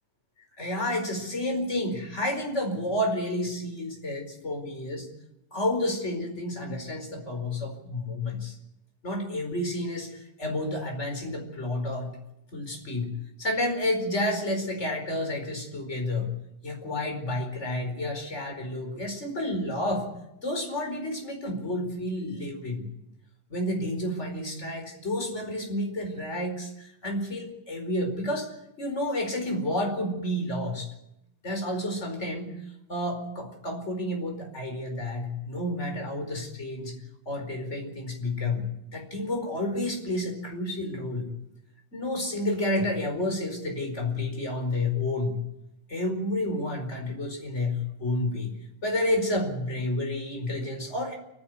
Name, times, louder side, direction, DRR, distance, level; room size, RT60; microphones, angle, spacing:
voice 1, 0.6-5.1 5.5-8.5 9.0-12.2 12.5-13.1 13.4-16.3 16.6-20.1 20.4-22.9 23.5-28.5 28.8-30.9 31.4-32.6 32.9-37.0 37.3-38.6 38.9-41.3 41.9-45.4 45.9-48.5 48.8-51.1, left 1 dB, 20° left, 4 dB, 4.9 m, -30 dB
29.5 x 10.5 x 9.7 m, 0.84 s
omnidirectional pair, 3.8 m